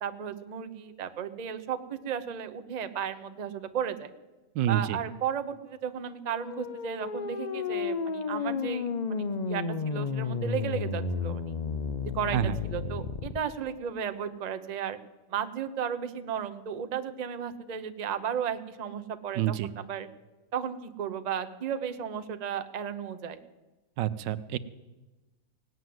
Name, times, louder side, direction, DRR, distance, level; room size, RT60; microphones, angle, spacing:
voice 1, 0.0-4.1 4.7-11.6 12.1-15.0 15.3-20.1 20.5-23.4, right 8 dB, 35° right, 9 dB, 0.7 m, -34 dB
voice 2, 4.5-5.0 12.3-12.6 19.4-19.7 24.0-24.6, right 12 dB, 85° right, 15 dB, 1.3 m, -27 dB
sound 1, 6.3-13.4, left 5 dB, 85° left, 0.3 m, -32 dB
18.0 x 9.4 x 7.7 m, 1.1 s
omnidirectional pair, 1.9 m